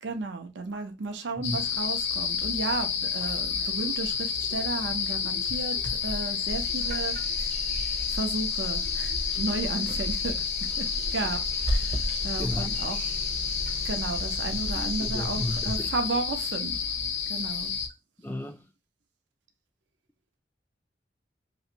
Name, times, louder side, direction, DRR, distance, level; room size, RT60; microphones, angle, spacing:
voice 1, 0.0-7.2 8.1-10.9 11.1-13.1 13.8-16.8 17.3-17.7, right 3 dB, 90° right, 0.6 m, -33 dB
sound 1, 1.4-17.9, left 6 dB, 80° left, 0.6 m, -30 dB
sound 2, 6.5-15.8 17.9-18.0, right 1 dB, 40° right, 0.6 m, -35 dB
voice 2, 12.4-12.8 14.7-15.9 18.2-18.6, left 1 dB, 10° left, 0.3 m, -34 dB
3.0 x 2.6 x 2.8 m
head